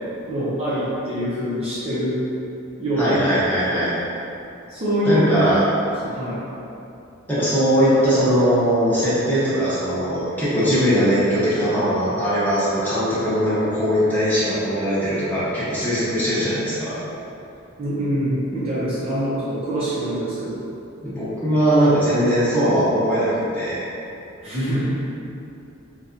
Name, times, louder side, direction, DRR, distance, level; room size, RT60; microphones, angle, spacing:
voice 1, 0.3-2.2 2.8-3.1 3.7-3.9 4.7-5.2 6.0-6.4 17.8-20.6 24.4-24.9, right 1 dB, 30° right, -10 dB, 0.6 m, -24 dB
voice 2, 3.0-3.9 5.0-5.6 7.3-16.9 21.0-23.8, equal, 10° left, -12 dB, 0.9 m, -20 dB
4.1 x 2.3 x 2.5 m, 2.7 s
head